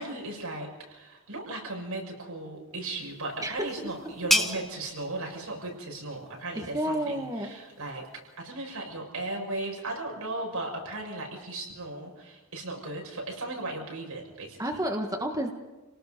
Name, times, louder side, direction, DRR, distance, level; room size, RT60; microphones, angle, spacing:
voice 1, 0.0-14.8, right 2 dB, 90° right, 0 dB, 6.7 m, -37 dB
sound 1, 3.0-8.4, left 1 dB, ahead, 1.3 m, -34 dB
voice 2, 3.4-3.9 6.7-7.5 14.6-15.5, right 1 dB, 15° right, 3 dB, 1.6 m, -30 dB
29.5 x 18.5 x 5.4 m, 1.1 s
head